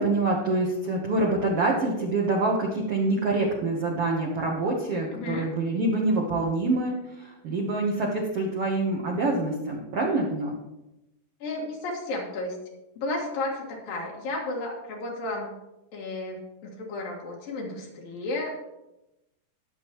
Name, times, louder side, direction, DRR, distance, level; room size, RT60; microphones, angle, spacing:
voice 1, 0.0-10.6, right 2 dB, 90° right, -1 dB, 1.3 m, -26 dB
voice 2, 5.1-5.5 11.4-12.6 13.0-15.6 15.9-18.6, left 2 dB, 60° left, -1 dB, 3.5 m, -33 dB
19.0 x 7.5 x 3.1 m, 0.92 s
omnidirectional pair, 4.8 m